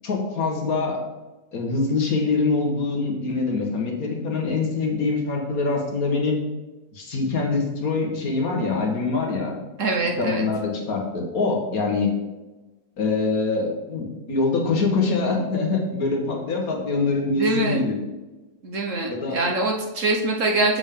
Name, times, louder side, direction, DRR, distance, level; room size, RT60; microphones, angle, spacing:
voice 1, 0.0-1.0 1.5-6.4 6.9-9.5 10.2-12.1 13.0-18.0 19.1-19.4, left 3 dB, 60° left, 1 dB, 1.8 m, -24 dB
voice 2, 9.8-10.4 17.3-17.8 18.6-20.8, right 2 dB, 55° right, 1 dB, 1.2 m, -24 dB
7.1 x 7.1 x 3.7 m, 1.1 s
omnidirectional pair, 1.8 m